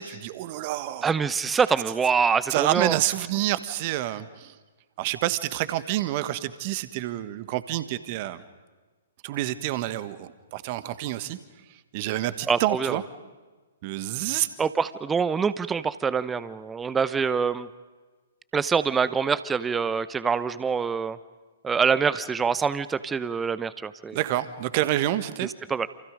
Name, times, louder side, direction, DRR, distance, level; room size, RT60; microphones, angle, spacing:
voice 1, 0.0-1.1 2.5-4.5 5.0-8.4 9.2-11.4 11.9-13.0 13.8-14.5 24.1-25.5, right 15 dB, 35° right, 13 dB, 1.4 m, -28 dB
voice 2, 1.0-3.0 12.5-13.0 14.6-17.7 18.5-21.2 21.6-24.2 25.7-25.9, right 6 dB, 10° right, 16 dB, 0.7 m, -25 dB
28.5 x 28.5 x 5.2 m, 1.3 s
figure-of-eight pair, 115°, 0 cm